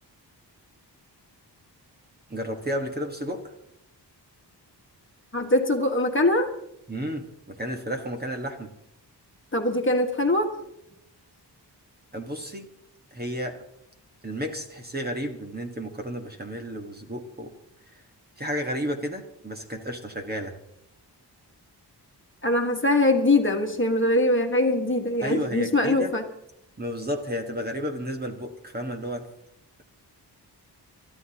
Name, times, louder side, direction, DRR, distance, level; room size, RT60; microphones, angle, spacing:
voice 1, 2.3-3.5 6.9-8.7 12.1-12.7 13.1-13.6 14.2-17.5 17.9-18.0 18.4-20.6 25.2-26.1 26.8-29.3, equal, 25° right, 4 dB, 1.4 m, -32 dB
voice 2, 5.3-6.5 9.5-10.5 22.4-26.2, left 1 dB, 30° left, 3 dB, 1.6 m, -22 dB
29.5 x 14.0 x 2.9 m, 0.78 s
wide cardioid pair, 165°, 41 cm